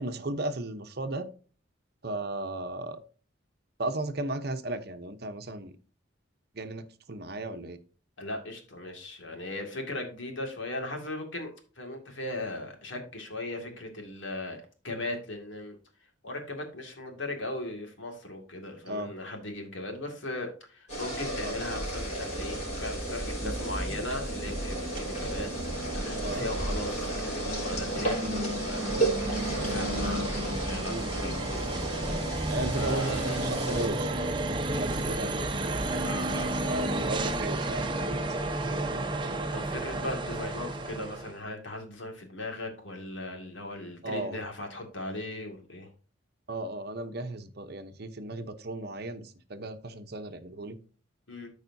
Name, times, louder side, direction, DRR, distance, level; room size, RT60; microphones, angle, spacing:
voice 1, 0.0-1.3 2.0-3.0 3.8-5.8 6.5-7.8 18.9-19.1 21.4-21.5 23.4-23.6 26.2-26.4 30.8-31.1 32.5-38.3 38.7-38.9 44.0-44.4 46.5-50.8, right 2 dB, 50° right, 9 dB, 0.9 m, -35 dB
voice 2, 8.2-11.5 11.8-15.8 16.2-25.5 25.9-33.4 36.0-36.6 39.5-45.9 51.3-51.5, left 1 dB, 70° left, 3 dB, 2.2 m, -38 dB
sound 1, 20.9-33.9, right 1 dB, 35° left, 4.1 m, -33 dB
sound 2, 21.7-41.4, right 1 dB, 25° right, 0.9 m, -33 dB
14.0 x 4.9 x 2.7 m, 0.38 s
head